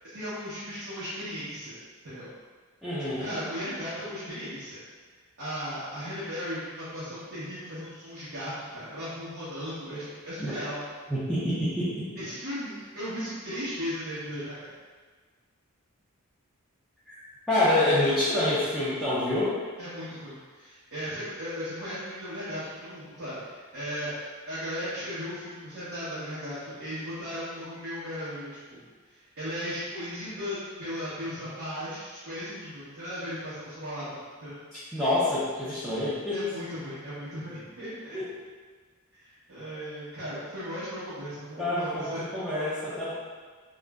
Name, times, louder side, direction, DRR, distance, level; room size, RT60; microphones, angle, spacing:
voice 1, 0.1-1.8 2.0-2.3 3.2-4.8 5.4-10.8 12.2-14.7 19.8-24.1 24.5-28.8 29.1-34.6 36.3-38.2 39.1-42.3, equal, 65° right, -14 dB, 0.9 m, -36 dB
voice 2, 2.8-3.3 10.4-10.5 11.1-11.9 17.1-19.5 34.9-36.4 38.1-38.2 41.6-43.1, left 1 dB, ahead, -14 dB, 0.5 m, -27 dB
2.4 x 2.0 x 3.4 m, 1.5 s
head